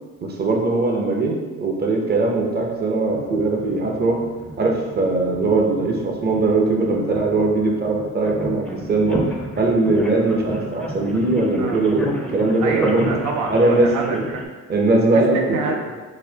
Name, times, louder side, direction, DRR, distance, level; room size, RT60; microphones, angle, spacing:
voice 1, 0.2-4.2 4.6-9.2 9.6-13.1 13.5-14.2 14.7-15.4, right 2 dB, 35° right, 1 dB, 0.7 m, -20 dB
sound 1, 2.3-14.5, equal, 5° left, 0.4 m, -32 dB
voice 2, 12.6-14.4 15.1-16.0, right 4 dB, 75° right, 2 dB, 0.5 m, -27 dB
4.0 x 2.6 x 2.7 m, 1.3 s
cardioid pair, 90°, 30 cm